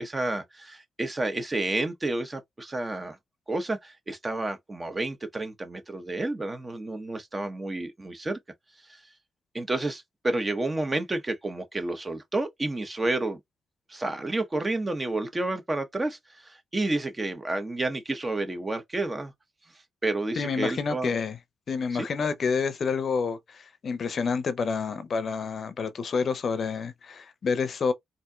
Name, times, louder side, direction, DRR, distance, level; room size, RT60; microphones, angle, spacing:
voice 1, 0.0-3.2 3.5-8.4 8.9-9.0 9.5-13.4 13.9-19.3 20.0-21.1 21.9-22.1, right 2 dB, 25° right, 1.0 m, -30 dB
voice 2, 20.4-21.4 21.7-27.9, left 5 dB, 55° left, 0.6 m, -28 dB
4.2 x 2.7 x 2.3 m
cardioid pair, 70°, 0 cm